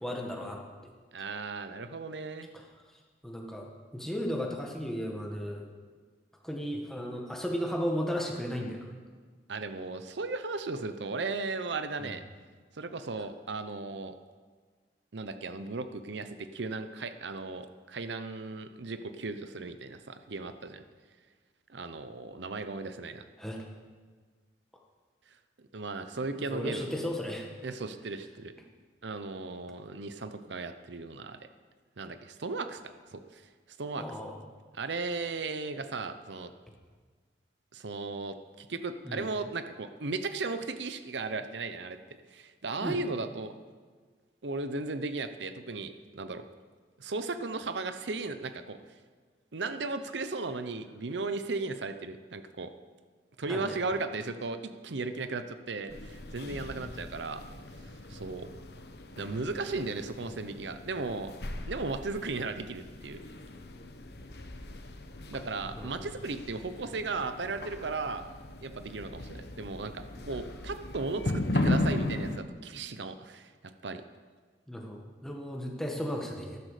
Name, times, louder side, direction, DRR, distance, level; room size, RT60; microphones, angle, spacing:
voice 1, 0.0-0.6 2.5-2.6 3.2-3.7 3.9-5.7 6.4-8.9 12.0-12.2 23.4-23.6 26.4-27.5 34.0-34.4 39.0-39.2 42.8-43.0 53.5-53.8 65.7-66.1 74.7-76.6, equal, 5° left, 0 dB, 1.7 m, -35 dB
voice 2, 1.1-2.5 9.5-12.2 12.8-14.1 15.1-20.8 21.7-23.2 25.7-26.9 27.6-28.5 29.0-31.4 32.0-32.8 33.1-33.4 33.8-34.1 34.7-36.5 37.7-42.0 42.3-43.5 44.4-46.4 47.0-48.8 49.5-52.7 53.4-57.4 58.1-58.5 59.2-61.3 61.7-63.2 65.3-68.2 68.6-74.0, right 3 dB, 90° right, 10 dB, 0.8 m, -36 dB
sound 1, 55.9-72.4, left 1 dB, 65° left, 1.0 m, -37 dB
14.0 x 13.0 x 5.0 m, 1.5 s
head